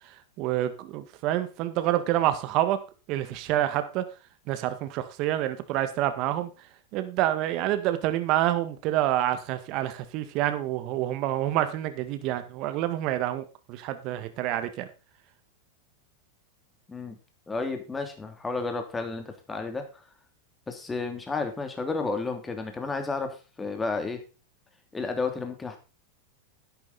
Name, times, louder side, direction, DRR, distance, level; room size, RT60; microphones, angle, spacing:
voice 1, 0.4-2.8 3.1-4.0 4.5-6.5 6.9-14.9, right 13 dB, 50° right, 10 dB, 1.6 m, -27 dB
voice 2, 17.5-20.0 20.7-24.2 24.9-25.8, left 3 dB, 15° left, 5 dB, 2.9 m, -32 dB
11.5 x 9.0 x 4.1 m, 0.32 s
hypercardioid pair, 120°, 0 cm